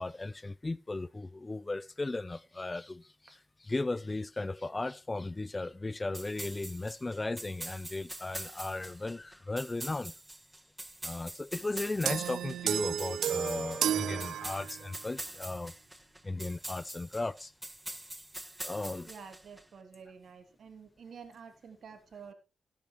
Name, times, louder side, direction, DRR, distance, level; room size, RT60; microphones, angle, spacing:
voice 1, 0.0-10.1 11.0-15.7 16.2-17.5 18.6-19.1, left 2 dB, 25° left, 0.5 m, -36 dB
sound 1, 6.1-19.6, right 1 dB, 15° right, 1.2 m, -44 dB
sound 2, 12.1-15.0, right 9 dB, 85° right, 0.7 m, -32 dB
voice 2, 19.1-22.3, right 6 dB, 70° right, 3.0 m, -50 dB
15.5 x 10.5 x 3.1 m
cardioid pair, 65°, 0 cm